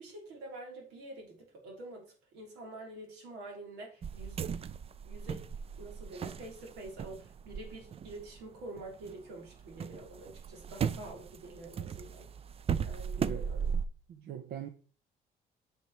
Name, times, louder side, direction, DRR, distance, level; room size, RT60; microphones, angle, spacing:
voice 1, 0.0-2.0 2.3-4.4 5.0-5.4 5.8-12.3 12.8-13.7, right 2 dB, 90° right, 3.9 m, -47 dB
sound 1, 4.0-9.1 9.5-13.9, right 7 dB, 35° right, 0.5 m, -37 dB
voice 2, 13.2-13.5 14.1-14.7, right 9 dB, 65° right, 0.8 m, -42 dB
9.2 x 5.4 x 4.4 m
cardioid pair, 110°, 17 cm